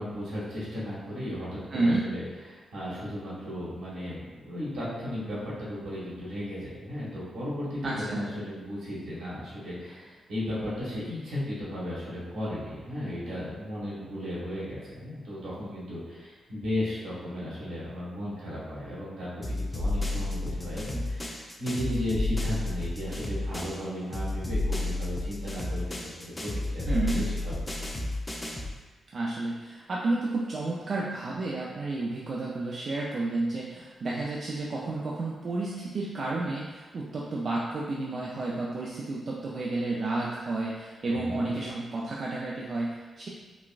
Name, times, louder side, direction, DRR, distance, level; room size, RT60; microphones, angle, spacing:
voice 1, 0.0-2.2 2.5-27.5 41.1-41.5, left 1 dB, 85° right, -9 dB, 1.4 m, -35 dB
voice 2, 1.7-2.0 7.8-8.3 26.9-27.2 29.1-43.3, right 2 dB, 60° right, -5 dB, 0.4 m, -31 dB
sound 1, 19.4-23.8 24.1-28.8, left 2 dB, 20° left, 0.5 m, -31 dB
4.0 x 2.3 x 2.3 m, 1.3 s
supercardioid pair, 50°, 0 cm